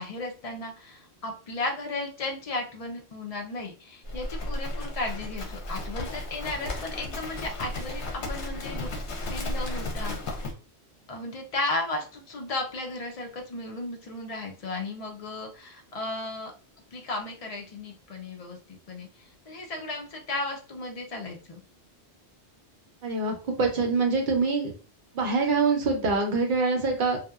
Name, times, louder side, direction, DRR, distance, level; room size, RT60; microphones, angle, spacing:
voice 1, 0.0-8.9 9.2-10.2 11.1-16.5 16.9-21.6, left 2 dB, 50° left, 2 dB, 0.4 m, -35 dB
Livestock farm animals working animals, 4.1-10.5, left 1 dB, 80° left, 0.9 m, -34 dB
voice 2, 23.0-24.7 25.1-27.2, right 4 dB, 55° right, 2 dB, 0.7 m, -25 dB
2.7 x 2.1 x 2.2 m, 0.37 s
omnidirectional pair, 1.1 m